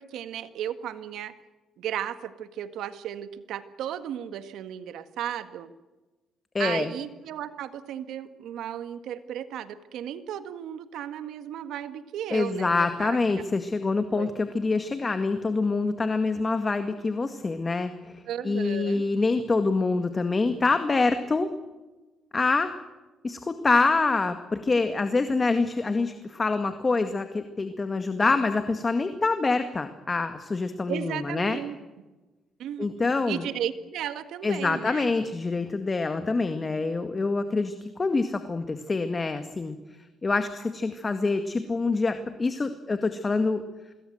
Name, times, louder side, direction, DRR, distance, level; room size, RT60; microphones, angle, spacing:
voice 1, 0.0-1.3 1.8-5.7 6.6-13.4 14.2-14.3 18.3-19.0 30.9-31.8 32.6-32.9 33.3-35.1, right 10 dB, 80° right, 11 dB, 1.8 m, -35 dB
voice 2, 6.5-6.9 12.3-21.5 22.3-22.7 23.2-31.6 32.8-33.4 34.4-39.8 40.2-43.6, left 3 dB, 30° left, 8 dB, 1.9 m, -26 dB
26.0 x 21.0 x 8.0 m, 1.1 s
cardioid pair, 90°, 0 cm